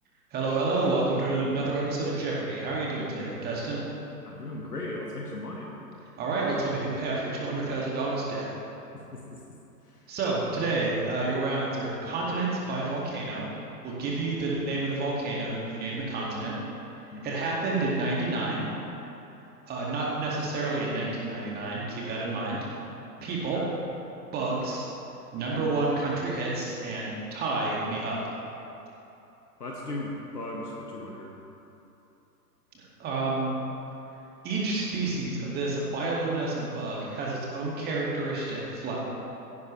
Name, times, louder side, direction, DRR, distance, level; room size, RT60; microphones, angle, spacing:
voice 1, 0.3-3.8 6.2-8.5 10.1-13.5 13.8-16.6 17.2-18.7 19.7-22.6 23.2-23.6 24.3-24.9 25.3-28.2 32.7-33.5 34.4-39.0, right 3 dB, 20° right, -4 dB, 2.4 m, -29 dB
voice 2, 4.2-5.7 8.9-9.4 9.8-10.2 17.1-17.4 23.5-23.7 29.6-31.4, left 2 dB, 70° left, -2 dB, 1.8 m, -37 dB
16.5 x 10.5 x 3.4 m, 3.0 s
figure-of-eight pair, 115°, 49 cm